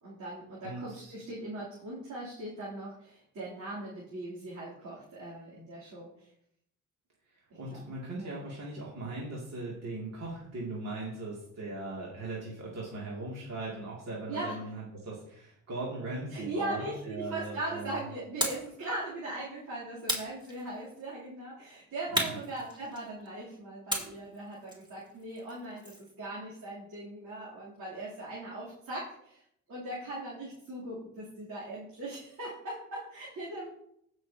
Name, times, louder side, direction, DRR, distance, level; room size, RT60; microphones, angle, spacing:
voice 1, 0.0-6.3 7.7-7.8 8.2-8.4 14.3-14.5 16.3-29.4 29.7-33.7, right 1 dB, 75° right, -8 dB, 3.2 m, -39 dB
voice 2, 0.6-1.1 7.3-18.1 22.1-22.4, right 2 dB, 60° right, -5 dB, 2.5 m, -39 dB
sound 1, 18.4-18.7 20.1-21.0 22.1-23.3 23.9-26.1, equal, 15° right, 2.5 m, -35 dB
16.0 x 6.3 x 2.8 m, 0.74 s
cardioid pair, 90°, 30 cm